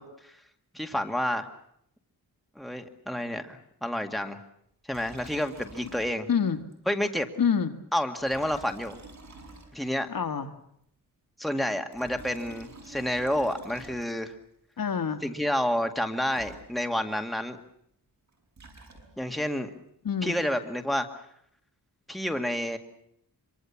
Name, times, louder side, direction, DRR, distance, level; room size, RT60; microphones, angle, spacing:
voice 1, 0.7-1.5 2.6-4.4 4.9-6.3 6.9-7.3 7.9-9.0 9.7-10.1 11.4-14.3 15.2-17.6 19.2-19.7 20.2-21.1 22.1-22.8, equal, ahead, 5 dB, 2.1 m, -29 dB
Liquid, 4.9-6.4 6.7-6.8 8.2-10.1 11.7-14.4 16.0-16.1 16.3-17.1 18.3-19.4, right 3 dB, 45° right, 6.1 m, -49 dB
voice 2, 6.3-6.6 7.4-7.7 10.1-10.6 14.8-15.2 20.0-20.4, left 7 dB, 60° left, 8 dB, 1.8 m, -27 dB
25.5 x 24.5 x 7.3 m, 0.70 s
wide cardioid pair, 105°, 38 cm